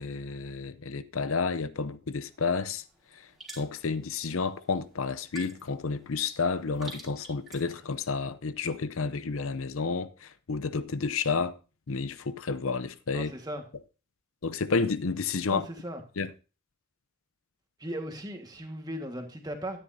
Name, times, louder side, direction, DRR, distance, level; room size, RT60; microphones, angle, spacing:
voice 1, 0.0-2.8 3.1-3.3 3.6-11.5 11.9-13.3 14.4-15.7 16.2-16.3, left 4 dB, 70° left, 0.7 m, -30 dB
sound 1, 2.2-7.9, right 2 dB, ahead, 3.3 m, -50 dB
voice 2, 13.1-13.6 15.5-16.0 17.8-19.8, right 1 dB, 20° right, 1.6 m, -37 dB
13.0 x 10.0 x 2.7 m
head